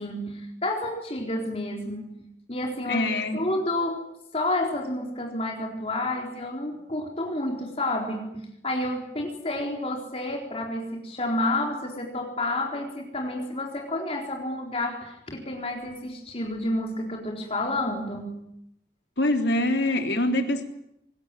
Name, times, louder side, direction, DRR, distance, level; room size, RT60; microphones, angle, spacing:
voice 1, 0.0-4.1 4.3-18.4, left 1 dB, 35° left, 1 dB, 4.1 m, -30 dB
voice 2, 2.9-3.4 19.2-20.6, left 1 dB, 75° left, 4 dB, 3.5 m, -24 dB
25.0 x 21.0 x 9.3 m, 0.79 s
head